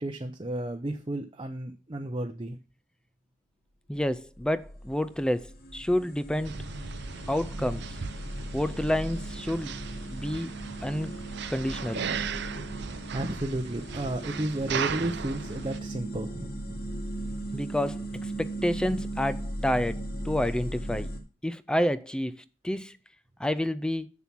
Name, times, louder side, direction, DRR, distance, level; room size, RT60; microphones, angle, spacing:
voice 1, 0.0-2.6 13.1-16.5, right 1 dB, 25° right, 0.7 m, -32 dB
voice 2, 3.9-6.6 7.3-8.0 8.5-9.8 10.1-10.5 10.8-11.1 11.5-12.1 17.5-21.1 21.4-23.0 23.4-24.1, left 1 dB, 5° left, 0.4 m, -29 dB
sound 1, 4.2-21.2, right 1 dB, 55° left, 2.2 m, -38 dB
sound 2, 6.4-15.8, right 6 dB, 65° right, 0.6 m, -37 dB
7.4 x 7.1 x 6.0 m
head